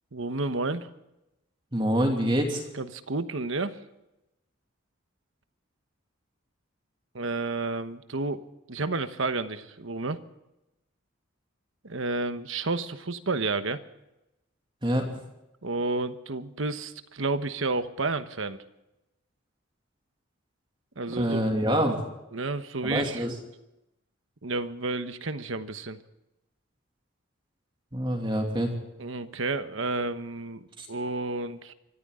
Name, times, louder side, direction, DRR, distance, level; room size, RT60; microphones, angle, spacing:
voice 1, 0.1-0.9 2.7-3.8 7.1-10.2 11.8-13.8 15.6-18.6 21.0-21.5 22.3-23.3 24.4-26.0 29.0-31.7, right 3 dB, 70° right, 10 dB, 1.2 m, -31 dB
voice 2, 1.7-2.6 14.8-15.1 21.2-22.0 22.8-23.3 27.9-28.7 30.8-30.9, equal, 25° right, 1 dB, 2.5 m, -26 dB
25.0 x 14.0 x 3.8 m, 0.91 s
head